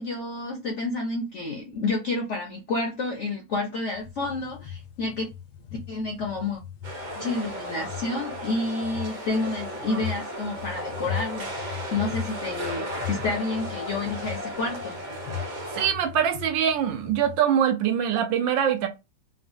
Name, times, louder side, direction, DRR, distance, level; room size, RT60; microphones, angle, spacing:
voice 1, 0.0-5.3 5.9-6.6 7.2-15.0, left 3 dB, 65° left, 0.7 m, -30 dB
sound 1, 3.9-17.4, left 9 dB, 85° left, 1.4 m, -39 dB
sound 2, 6.8-15.9, equal, 45° right, 0.6 m, -35 dB
voice 2, 15.7-18.9, right 9 dB, 80° right, 1.4 m, -23 dB
3.7 x 2.1 x 2.5 m
omnidirectional pair, 2.1 m